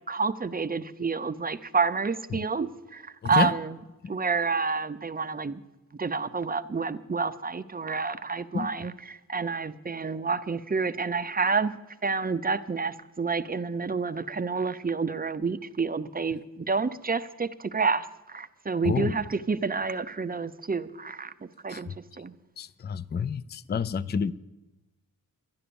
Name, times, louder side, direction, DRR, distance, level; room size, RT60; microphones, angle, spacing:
voice 1, 0.1-3.8 4.1-5.6 6.0-11.8 12.0-21.3 21.6-22.3, right 4 dB, 25° right, 0.5 m, -29 dB
voice 2, 22.6-24.3, left 6 dB, 30° left, 0.4 m, -28 dB
11.5 x 10.5 x 6.9 m
wide cardioid pair, 90°, 35 cm